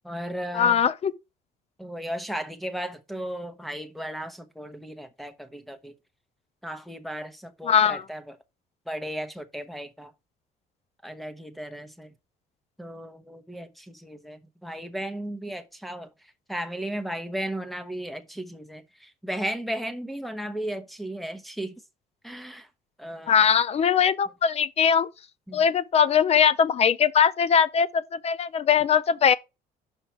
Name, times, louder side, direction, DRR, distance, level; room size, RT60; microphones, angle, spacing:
voice 1, 0.0-0.8 1.8-5.9 6.6-8.4 8.9-10.1 11.0-12.1 12.8-16.1 16.5-21.8 22.2-22.7 23.0-23.5 25.5-25.7, right 1 dB, ahead, 1.0 m, -35 dB
voice 2, 0.5-1.1 7.6-8.0 23.3-25.1 25.5-29.3, left 7 dB, 40° left, 0.5 m, -21 dB
5.8 x 5.4 x 4.5 m
cardioid pair, 110°, 17 cm